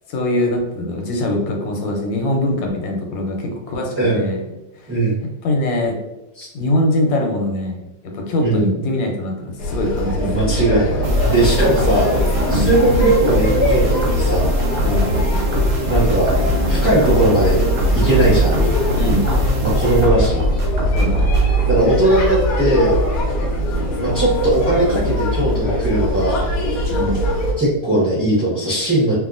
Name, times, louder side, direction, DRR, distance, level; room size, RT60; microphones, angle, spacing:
voice 1, 0.1-4.4 5.4-6.0 6.5-10.4 12.5-12.7 14.8-15.1 19.0-19.2 20.9-21.3 26.9-27.2, left 1 dB, 90° left, 1 dB, 1.4 m, -22 dB
voice 2, 4.9-5.2 6.4-6.5 8.4-8.8 10.2-12.1 12.5-14.5 15.9-16.3 16.7-17.6 17.9-18.5 19.6-20.4 21.6-23.0 24.0-26.4 27.6-29.2, right 2 dB, 10° right, -11 dB, 0.7 m, -18 dB
sound 1, 9.6-27.5, right 1 dB, 60° left, 1.0 m, -21 dB
sound 2, 11.0-21.5, left 1 dB, 55° right, 1.0 m, -21 dB
2.8 x 2.6 x 2.5 m, 0.98 s
omnidirectional pair, 2.0 m